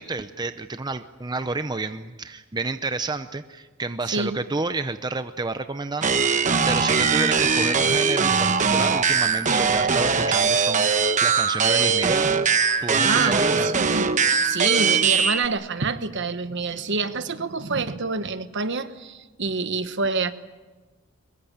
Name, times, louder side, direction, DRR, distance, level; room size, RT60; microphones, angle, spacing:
voice 1, 0.0-10.9 11.2-12.3 12.8-13.7, right 3 dB, 20° right, 10 dB, 0.7 m, -30 dB
voice 2, 4.1-4.4 13.0-20.3, right 4 dB, 55° right, 11 dB, 1.2 m, -27 dB
sound 1, 6.0-15.5, right 5 dB, 35° right, 1.0 m, -21 dB
23.0 x 21.5 x 8.7 m, 1.3 s
head